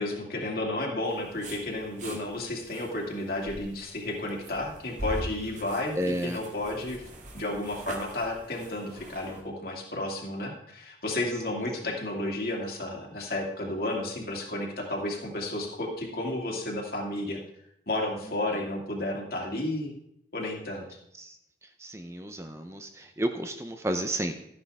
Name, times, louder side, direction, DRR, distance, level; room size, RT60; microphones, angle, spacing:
voice 1, 0.0-7.0 7.3-17.4 17.9-19.9 20.3-20.9, left 1 dB, 55° left, -1 dB, 2.3 m, -32 dB
sound 1, 1.1-9.4, right 1 dB, 40° right, 1.8 m, -42 dB
voice 2, 6.0-6.4 21.2-21.4 21.8-24.3, right 1 dB, 15° right, 6 dB, 0.6 m, -31 dB
13.5 x 9.6 x 3.5 m, 0.76 s
head